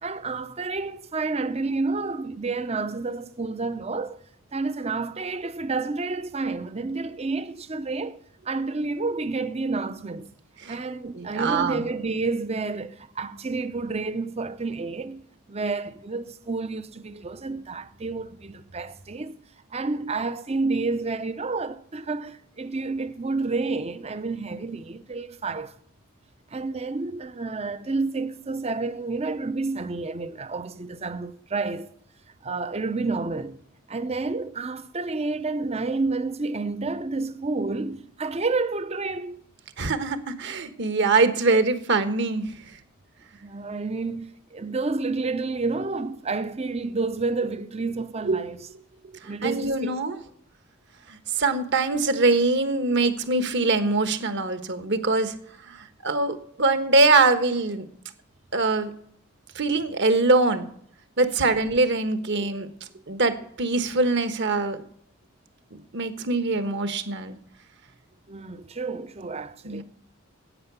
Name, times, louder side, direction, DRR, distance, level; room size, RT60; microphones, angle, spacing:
voice 1, 0.0-4.2 4.5-8.2 8.5-10.3 10.7-15.2 15.5-19.4 19.7-25.7 26.5-31.9 32.4-33.6 33.9-39.4 43.3-48.7 49.2-50.2 68.3-69.8, right 3 dB, 30° right, 0.7 m, -30 dB
voice 2, 11.1-11.8 39.8-42.5 48.2-48.4 49.4-50.2 51.1-55.3 55.7-57.8 58.5-58.9 59.5-60.7 61.2-62.7 63.1-64.8 65.9-67.4 69.6-69.8, right 3 dB, 55° right, 1.3 m, -23 dB
11.0 x 8.8 x 6.9 m
head